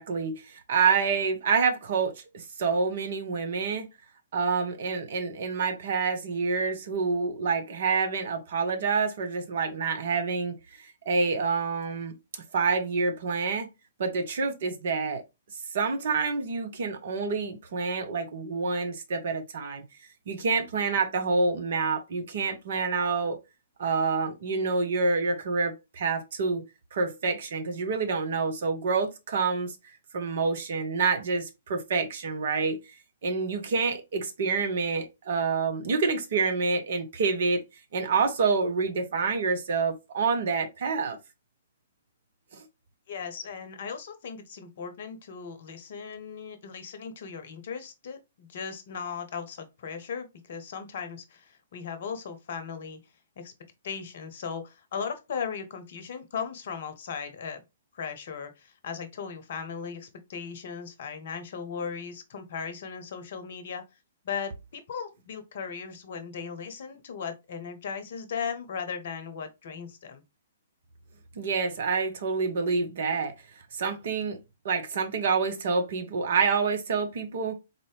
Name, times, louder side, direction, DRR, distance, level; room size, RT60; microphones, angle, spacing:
voice 1, 0.0-3.9 4.3-10.5 10.8-12.2 12.5-13.7 14.0-15.2 15.7-19.8 20.3-23.4 23.8-26.6 26.9-29.7 30.1-32.8 33.2-37.6 37.9-41.2 42.5-42.6 71.4-73.3 73.7-74.4 74.6-77.6, right 4 dB, 50° right, 0.9 m, -27 dB
voice 2, 43.1-53.0 53.4-53.5 53.8-57.6 57.9-63.8 64.2-70.2, left 6 dB, 50° left, 0.7 m, -37 dB
4.1 x 2.7 x 3.2 m
figure-of-eight pair, 120°, 0 cm